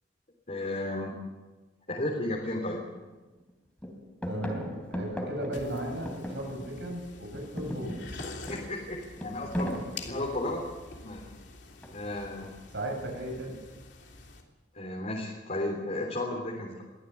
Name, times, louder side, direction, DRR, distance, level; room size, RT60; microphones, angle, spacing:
voice 1, 0.5-1.1 1.9-2.8 8.5-10.6 11.0-11.2 11.9-12.5 14.7-16.8, left 1 dB, 40° left, -2 dB, 3.4 m, -33 dB
sound 1, 2.4-2.5 2.9-3.5 3.8-7.0 7.2-10.9 11.8-12.3, equal, 5° left, 3.4 m, -38 dB
voice 2, 4.3-8.0 8.4-8.5 12.7-13.6, right 1 dB, 65° right, 1 dB, 7.9 m, -36 dB
sound 2, 5.5-14.4, left 3 dB, 70° left, 3.2 m, -46 dB
22.5 x 15.0 x 8.3 m, 1.2 s
head